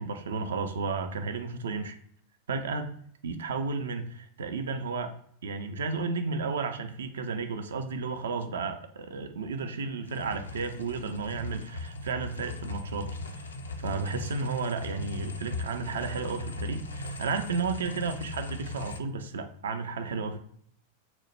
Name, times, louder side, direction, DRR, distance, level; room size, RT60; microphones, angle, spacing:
voice 1, 0.0-2.0 2.5-2.9 3.2-5.1 5.4-13.5 13.8-20.4, right 4 dB, 65° right, 7 dB, 0.4 m, -33 dB
sound 1, 10.1-19.0, left 2 dB, 70° left, 0.4 m, -39 dB
3.0 x 2.0 x 3.1 m, 0.65 s
figure-of-eight pair, 90°, 0 cm